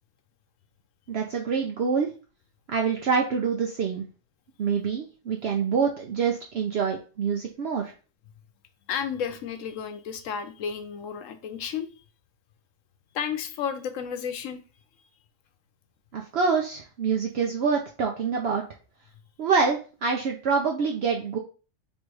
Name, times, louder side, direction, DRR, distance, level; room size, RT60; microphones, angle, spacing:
voice 1, 1.1-2.1 2.7-4.0 4.6-7.9 16.1-18.6 19.4-21.4, right 5 dB, 60° right, 1 dB, 0.9 m, -26 dB
voice 2, 8.9-11.9 13.1-14.6, left 7 dB, 90° left, 8 dB, 1.0 m, -32 dB
3.3 x 3.1 x 4.6 m, 0.35 s
omnidirectional pair, 1.3 m